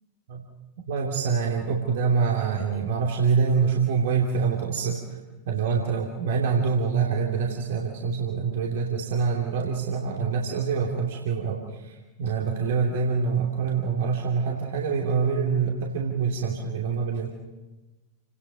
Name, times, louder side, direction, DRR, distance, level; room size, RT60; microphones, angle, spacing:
voice 1, 0.8-5.0 5.5-17.3, right 5 dB, 55° right, -1 dB, 3.0 m, -25 dB
29.5 x 19.0 x 5.3 m, 1.1 s
figure-of-eight pair, 90°, 0 cm